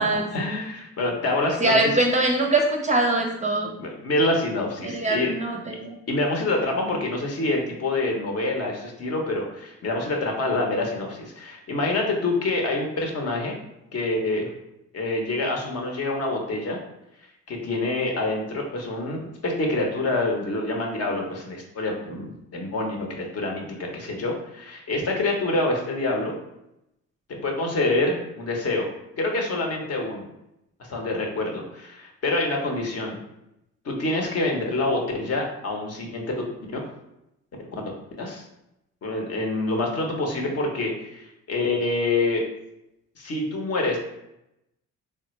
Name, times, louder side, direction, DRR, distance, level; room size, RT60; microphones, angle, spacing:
voice 1, 0.3-1.9 3.8-5.3 6.1-13.5 13.9-14.5 14.9-16.8 17.5-26.3 27.3-28.9 29.2-30.3 30.8-33.2 33.8-36.3 38.2-38.4 39.0-42.4 43.2-44.0, left 2 dB, 55° left, 1 dB, 0.8 m, -26 dB
voice 2, 1.6-3.7 4.8-5.9, right 2 dB, 25° right, 2 dB, 0.5 m, -22 dB
3.2 x 2.1 x 3.0 m, 0.85 s
cardioid pair, 90°, 30 cm